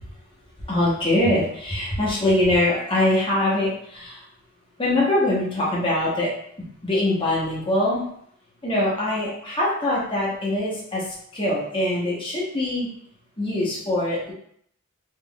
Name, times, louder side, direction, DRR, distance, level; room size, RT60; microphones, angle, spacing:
voice 1, 0.7-4.2 4.8-6.3 6.8-8.0 8.6-11.0 11.3-12.9 13.4-14.3, left 1 dB, 25° left, -6 dB, 1.0 m, -23 dB
3.5 x 3.3 x 2.3 m, 0.67 s
head